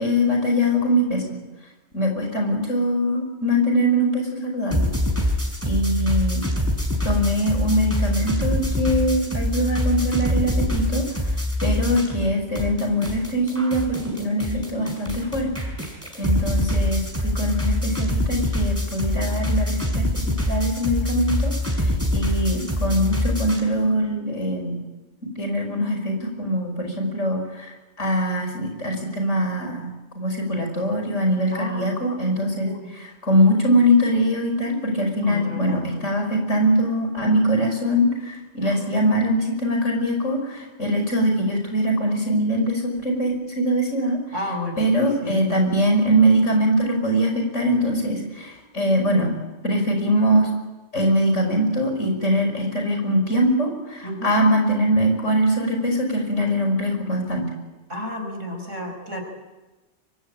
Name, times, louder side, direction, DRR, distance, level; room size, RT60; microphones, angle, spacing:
voice 1, 0.0-1.4 1.9-4.9 5.7-6.5 7.0-11.1 11.6-15.5 16.2-20.0 20.5-24.8 25.4-27.7 28.0-29.9 30.2-32.7 33.2-44.2 44.8-49.3 49.6-50.5 50.9-57.4, equal, 85° left, 3 dB, 6.2 m, -22 dB
sound 1, 4.7-12.3 12.6-23.6, left 1 dB, 10° right, 5.0 m, -24 dB
voice 2, 31.5-32.1 32.5-32.9 35.2-36.0 38.6-38.8 44.3-44.9 45.2-45.6 54.0-54.4 57.9-59.2, left 1 dB, 85° right, 4 dB, 5.7 m, -32 dB
24.0 x 23.5 x 8.8 m, 1.1 s
omnidirectional pair, 1.2 m